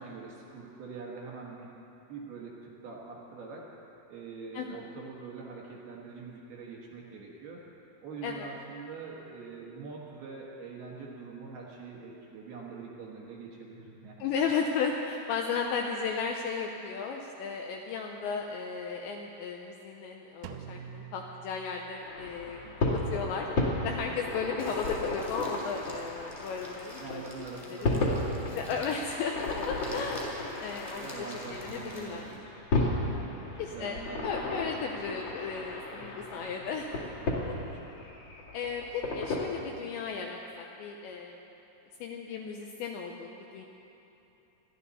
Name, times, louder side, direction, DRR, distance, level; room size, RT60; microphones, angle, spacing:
voice 1, 0.0-1.7 2.1-3.7 4.1-7.6 8.0-14.3 22.4-22.8 27.0-28.8 29.5-29.7 31.0-32.7 33.0-34.7 36.0-36.4 37.2-37.5, right 4 dB, 65° right, -3 dB, 2.9 m, -44 dB
voice 2, 14.2-22.6 23.1-23.5 23.8-27.2 27.6-27.9 28.6-30.3 30.6-31.1 31.5-32.3 33.6-36.9 38.5-41.4 42.0-43.7, left 5 dB, 80° left, 1 dB, 2.6 m, -35 dB
Drum, 20.4-22.4, right 9 dB, 85° right, 3.2 m, -46 dB
sound 1, 22.0-39.4, left 2 dB, 40° left, 2.4 m, -34 dB
sound 2, 24.6-32.4, equal, 10° left, 2.0 m, -50 dB
27.5 x 11.5 x 4.2 m, 3.0 s
omnidirectional pair, 5.9 m